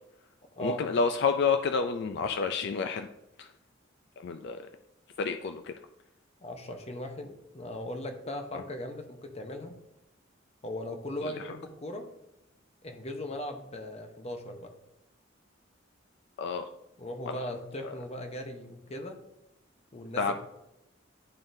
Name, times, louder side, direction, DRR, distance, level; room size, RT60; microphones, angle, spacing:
voice 1, 0.6-3.1 3.4-3.5 4.2-4.6 5.2-5.7 11.2-11.3 16.4-16.7 17.3-17.4 17.8-17.9 20.2-20.3, left 5 dB, 60° left, 7 dB, 0.3 m, -29 dB
voice 2, 6.4-9.8 10.6-12.1 12.8-14.7 17.0-19.2 19.9-20.3, left 1 dB, 35° left, 5 dB, 0.8 m, -38 dB
10.5 x 3.7 x 2.6 m, 0.86 s
head